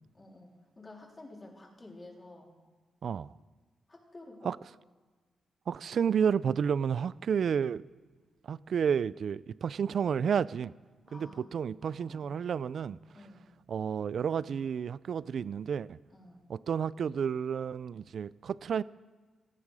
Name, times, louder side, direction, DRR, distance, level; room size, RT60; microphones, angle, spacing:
voice 1, 0.1-2.5 3.9-4.6 11.1-11.4 11.8-12.5 13.1-13.5 16.1-16.5, left 2 dB, 25° left, 3.5 m, -51 dB
voice 2, 3.0-3.3 4.4-4.6 5.7-7.8 8.4-10.7 11.1-13.0 13.7-16.0 16.5-18.8, right 7 dB, 65° right, 0.4 m, -31 dB
18.0 x 14.5 x 4.8 m
cardioid pair, 90°, 0 cm